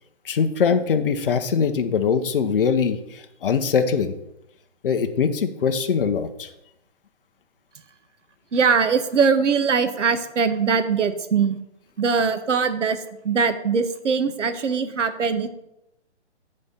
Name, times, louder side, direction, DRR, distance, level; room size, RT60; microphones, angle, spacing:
voice 1, 0.2-4.1 4.8-6.5, left 6 dB, 50° left, 7 dB, 0.8 m, -22 dB
voice 2, 8.5-11.6 12.0-13.0 13.2-15.5, right 5 dB, 85° right, 10 dB, 1.0 m, -21 dB
9.7 x 4.3 x 5.1 m, 0.88 s
hypercardioid pair, 165°, 35 cm